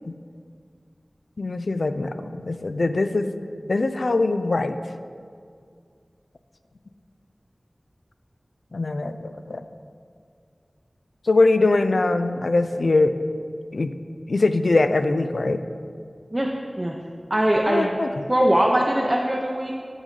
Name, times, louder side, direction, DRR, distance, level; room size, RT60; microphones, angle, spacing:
voice 1, 1.4-3.3 3.7-4.8 8.7-9.6 11.3-13.1 13.7-13.9 14.3-15.6 17.7-18.1, left 2 dB, 80° left, 9 dB, 0.3 m, -22 dB
voice 2, 16.3-16.9 17.3-17.9 18.3-19.7, right 1 dB, 30° right, -1 dB, 0.6 m, -21 dB
9.0 x 3.9 x 5.2 m, 2.2 s
wide cardioid pair, 45°, 0 cm